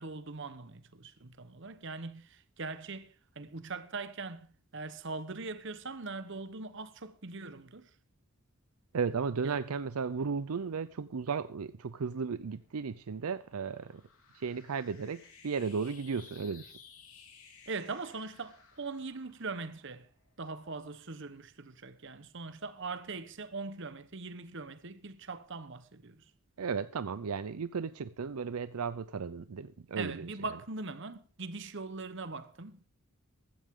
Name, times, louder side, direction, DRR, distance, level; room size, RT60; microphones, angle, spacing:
voice 1, 0.0-7.9 9.4-9.7 17.7-20.1 20.4-26.2 30.0-32.9, right 3 dB, 55° right, 1.0 m, -41 dB
voice 2, 8.9-14.0 14.3-16.7 26.6-30.2, right 5 dB, 80° right, 0.5 m, -35 dB
sound 1, 12.3-20.9, left 6 dB, 75° left, 3.4 m, -58 dB
15.0 x 13.0 x 3.7 m
head